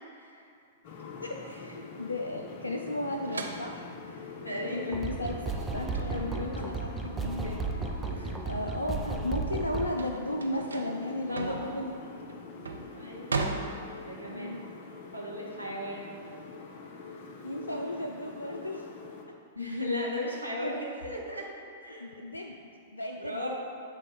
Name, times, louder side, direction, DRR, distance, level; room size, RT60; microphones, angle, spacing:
voice 1, 0.1-0.5 4.4-5.0 5.9-6.3 8.1-8.4 11.3-11.7 12.9-13.7 14.0-14.5 15.1-16.1 19.5-21.5 21.8-22.2 23.2-23.5, left 1 dB, 90° right, -3 dB, 1.0 m, -36 dB
sound 1, 0.8-19.3, left 4 dB, 45° left, 0.6 m, -45 dB
voice 2, 1.2-4.3 4.7-11.9 12.3-12.4 14.3-14.6 17.4-18.9 20.2-20.3 22.0-22.6 22.9-23.5, left 1 dB, 80° left, 1 dB, 0.3 m, -35 dB
sound 2, 3.3-8.3 8.8-14.4, right 3 dB, 75° right, 0.4 m, -38 dB
sound 3, 4.9-9.9, right 4 dB, 10° right, 0.4 m, -34 dB
7.4 x 4.1 x 3.2 m, 2.4 s
figure-of-eight pair, 100°, 0 cm